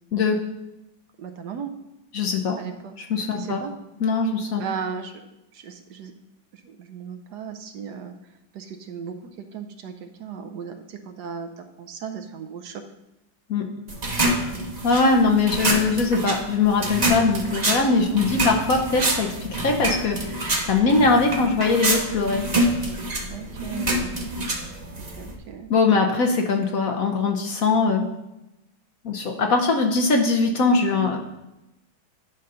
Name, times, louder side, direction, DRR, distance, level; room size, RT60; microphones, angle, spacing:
voice 1, 1.2-1.7 2.6-3.0 3.3-3.7 4.6-5.1 5.5-6.1 6.5-8.1 8.5-12.8 14.5-14.7 18.0-18.6 23.3-24.1 25.0-25.7, right 7 dB, 70° right, 7 dB, 1.1 m, -36 dB
voice 2, 2.1-2.6 3.1-3.6 4.0-4.6 13.5-13.7 14.8-22.4 25.7-28.0 29.0-31.2, left 3 dB, 60° left, 2 dB, 1.0 m, -21 dB
sound 1, 13.9-25.3, right 1 dB, 30° right, 0.9 m, -26 dB
10.5 x 3.9 x 5.5 m, 0.94 s
omnidirectional pair, 2.0 m